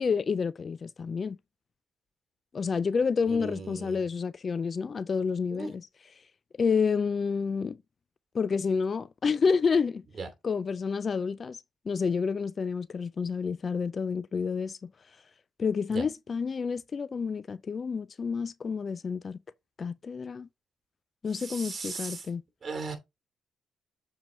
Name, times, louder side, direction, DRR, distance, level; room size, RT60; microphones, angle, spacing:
voice 1, 0.0-1.4 2.5-5.8 6.6-7.8 8.3-10.0 10.4-11.6 11.9-14.9 15.6-19.4 19.8-20.5 21.2-22.4, left 5 dB, 40° left, 0.3 m, -29 dB
voice 2, 3.3-4.0 5.5-5.7 10.1-10.3 15.9-16.1 21.3-22.3 22.6-23.0, right 3 dB, 40° right, 2.8 m, -37 dB
7.3 x 4.5 x 3.8 m
cardioid pair, 90°, 0 cm